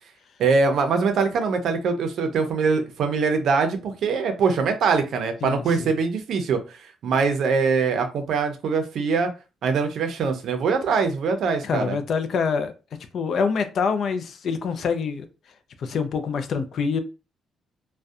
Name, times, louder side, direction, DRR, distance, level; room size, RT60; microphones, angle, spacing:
voice 1, 0.4-9.3 9.6-12.0, right 5 dB, 70° right, 0.5 m, -23 dB
voice 2, 5.4-5.9 11.6-12.7 13.1-15.3 15.8-17.0, left 5 dB, 60° left, 0.4 m, -25 dB
2.5 x 2.1 x 2.4 m
cardioid pair, 120°, 0 cm